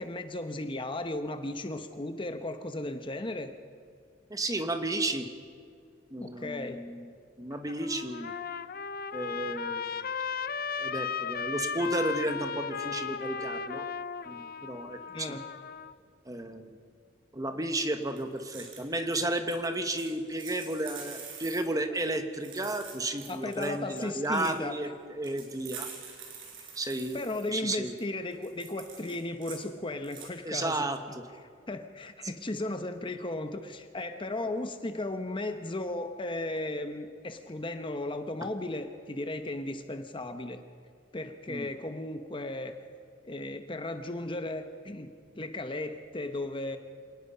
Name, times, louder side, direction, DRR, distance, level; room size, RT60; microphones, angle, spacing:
voice 1, 0.0-3.5 6.2-6.8 15.1-15.5 23.3-24.8 26.6-26.7 27.1-30.9 31.7-40.6 41.1-42.8 43.2-45.1 45.3-46.8, left 2 dB, 25° left, 8 dB, 0.9 m, -35 dB
voice 2, 4.3-5.3 6.1-7.1 7.4-8.3 9.1-9.9 10.8-13.8 14.3-15.3 16.3-16.7 17.3-25.9 26.8-27.2 27.5-28.0 30.4-31.0 41.5-41.7, right 1 dB, 20° right, 7 dB, 1.3 m, -33 dB
Trumpet, 7.5-15.9, left 6 dB, 50° left, 0.6 m, -36 dB
sound 1, 18.2-18.8 19.1-19.3 19.5-19.6 19.9-21.6 22.3-23.7 24.0-24.6 25.2-27.5 27.9-28.0 28.3-29.6 30.0-30.3 30.7-30.8, right 6 dB, 85° right, 5.2 m, -46 dB
27.0 x 18.5 x 5.6 m, 2.1 s
head